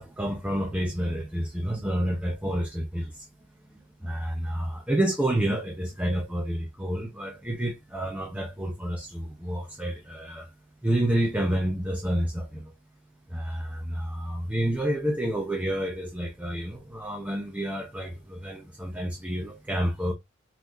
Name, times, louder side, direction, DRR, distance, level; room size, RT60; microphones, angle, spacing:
voice 1, 0.0-3.3 3.7-10.5 10.8-12.7 13.3-20.1, right 1 dB, 5° right, 0.7 m, -29 dB
5.9 x 3.2 x 2.5 m
head